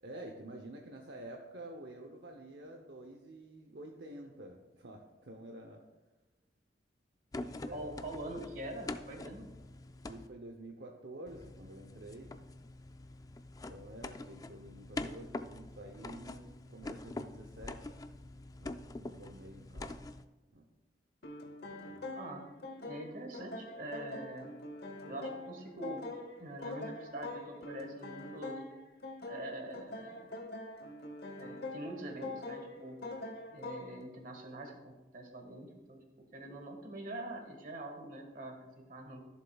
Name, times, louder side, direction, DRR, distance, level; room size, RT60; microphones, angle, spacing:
voice 1, 0.0-5.8 7.7-8.1 10.1-12.4 13.7-18.0 18.6-20.0 20.5-20.7 21.6-22.1, right 1 dB, 65° right, 2 dB, 0.8 m, -49 dB
sound 1, 7.3-10.3 11.3-20.3, left 2 dB, 20° left, 0.3 m, -45 dB
voice 2, 7.7-9.4 22.1-22.5 22.8-24.5 25.0-26.0 26.4-28.6 29.2-30.3 31.4-33.0 33.5-36.0 36.3-39.2, right 1 dB, 50° right, 3 dB, 1.6 m, -44 dB
sound 2, 21.2-34.0, left 2 dB, 60° left, 1.0 m, -44 dB
14.5 x 7.3 x 2.3 m, 1.1 s
head